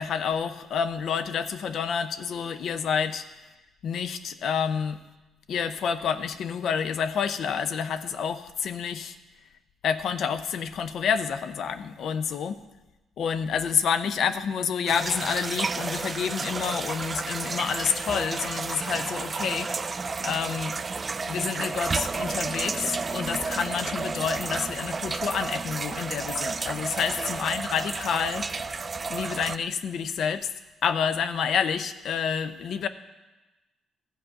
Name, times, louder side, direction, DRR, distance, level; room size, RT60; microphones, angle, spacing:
voice 1, 0.0-3.2 3.8-5.0 5.5-9.2 9.8-12.6 13.2-19.7 20.2-20.8 21.3-28.5 29.1-30.5 30.8-32.9, left 7 dB, 65° left, 12 dB, 0.6 m, -28 dB
sound 1, 14.9-29.6, right 4 dB, 35° right, 0.3 m, -31 dB
13.0 x 5.0 x 7.7 m, 1.1 s
cardioid pair, 90°, 0 cm